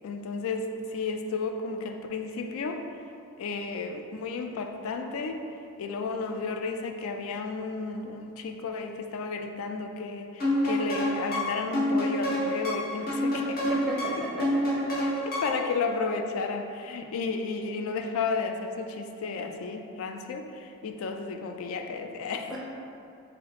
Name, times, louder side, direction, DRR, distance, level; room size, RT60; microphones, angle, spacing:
voice 1, 0.0-2.8 3.4-5.4 5.8-13.6 15.0-22.6, left 4 dB, 75° left, 4 dB, 0.3 m, -33 dB
sound 1, 10.4-15.7, equal, 40° left, 0.8 m, -28 dB
voice 2, 13.7-15.0 22.5-22.6, equal, ahead, -6 dB, 0.5 m, -35 dB
3.3 x 2.8 x 4.0 m, 2.5 s
head